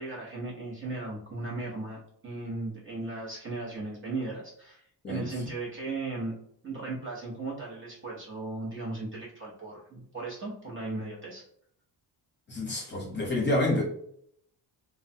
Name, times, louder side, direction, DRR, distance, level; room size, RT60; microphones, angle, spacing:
voice 1, 0.0-4.8 5.1-6.3 6.6-11.4, right 2 dB, 30° right, -4 dB, 0.7 m, -36 dB
voice 2, 12.5-13.8, left 1 dB, 25° left, -3 dB, 0.8 m, -28 dB
3.0 x 2.1 x 2.6 m, 0.65 s
cardioid pair, 160°, 42 cm